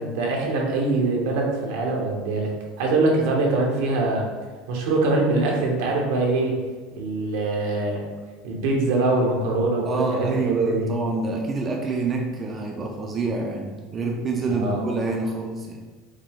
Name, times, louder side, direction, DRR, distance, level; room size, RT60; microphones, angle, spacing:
voice 1, 0.0-2.5 2.8-4.2 4.7-6.6 7.0-8.0 8.4-10.9 14.5-14.8, right 2 dB, 80° right, 0 dB, 1.0 m, -23 dB
voice 2, 9.8-15.8, right 3 dB, 25° right, 0 dB, 0.5 m, -27 dB
5.0 x 2.2 x 3.7 m, 1.3 s
supercardioid pair, 135°, 0 cm